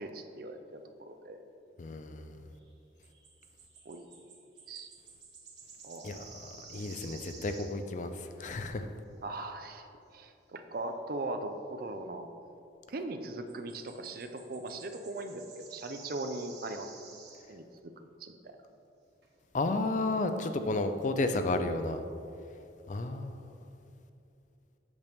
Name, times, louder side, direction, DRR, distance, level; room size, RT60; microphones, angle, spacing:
voice 1, 0.0-1.4 3.9-4.1 4.7-4.9 5.8-6.1 6.7-6.8 9.2-9.9 10.1-12.3 12.9-16.9 17.5-17.9 18.2-18.6, right 2 dB, 55° right, 7 dB, 0.5 m, -39 dB
voice 2, 1.8-2.4 6.0-8.9 19.5-22.0 22.9-23.6, left 2 dB, 45° left, 8 dB, 0.4 m, -32 dB
sound 1, 2.5-2.7 3.0-7.8 13.5-17.5 18.8-18.9 19.2-19.3, right 4 dB, 70° right, 1.3 m, -52 dB
8.1 x 6.6 x 3.5 m, 2.6 s
head